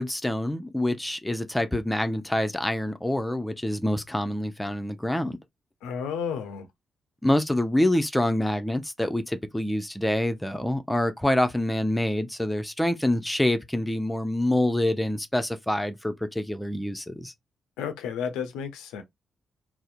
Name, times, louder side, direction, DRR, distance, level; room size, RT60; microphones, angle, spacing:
voice 1, 0.0-5.4 7.2-17.3, left 1 dB, 10° left, 0.5 m, -26 dB
voice 2, 5.8-6.7 17.8-19.0, left 7 dB, 80° left, 0.4 m, -32 dB
2.7 x 2.0 x 2.4 m
hypercardioid pair, 45°, 0 cm